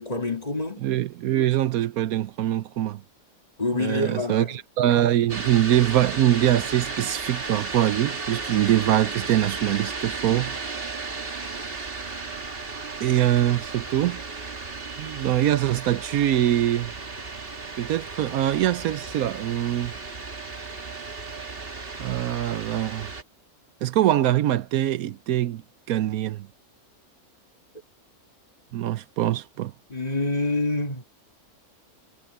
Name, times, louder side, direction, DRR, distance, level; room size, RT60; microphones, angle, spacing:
voice 1, 0.0-0.8 3.6-4.5 29.9-31.1, left 2 dB, 25° left, 2.2 m, -27 dB
voice 2, 0.8-3.0 3.7-10.5 13.0-14.2 15.0-16.9 17.8-19.9 22.0-23.1 23.8-25.6 25.9-26.5 28.7-29.7, right 12 dB, 80° right, 1.1 m, -23 dB
sound 1, 5.3-23.2, right 4 dB, 40° right, 1.9 m, -35 dB
omnidirectional pair, 1.5 m